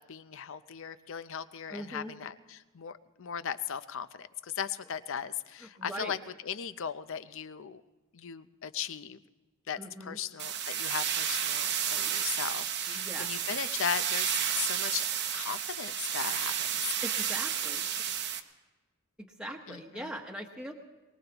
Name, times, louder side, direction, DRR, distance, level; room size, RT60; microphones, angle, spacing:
voice 1, 0.0-6.2 6.4-7.8 8.1-9.2 9.7-15.1 15.3-16.8 19.7-20.1, left 8 dB, 60° left, 13 dB, 0.6 m, -37 dB
voice 2, 1.7-2.1 5.6-6.2 9.8-10.2 12.9-13.3 17.0-17.9 19.2-20.7, equal, 5° right, 0 dB, 1.1 m, -41 dB
sound 1, 10.4-18.4, right 9 dB, 50° right, 0.8 m, -32 dB
23.0 x 19.5 x 3.0 m, 1.2 s
head